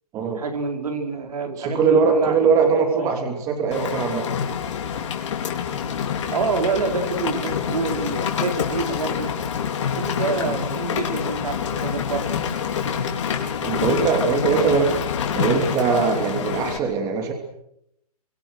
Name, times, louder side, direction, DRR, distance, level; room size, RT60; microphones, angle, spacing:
voice 1, 0.2-2.5 3.0-3.1 6.3-9.3 10.0-12.3, right 4 dB, 70° right, 4 dB, 5.3 m, -27 dB
voice 2, 1.6-4.3 10.5-10.6 13.6-15.0 15.3-17.3, right 5 dB, 15° right, 4 dB, 2.9 m, -21 dB
Rain, 3.7-16.8, left 7 dB, 50° left, 4.4 m, -26 dB
28.5 x 25.0 x 6.6 m, 0.77 s
hypercardioid pair, 155°, 20 cm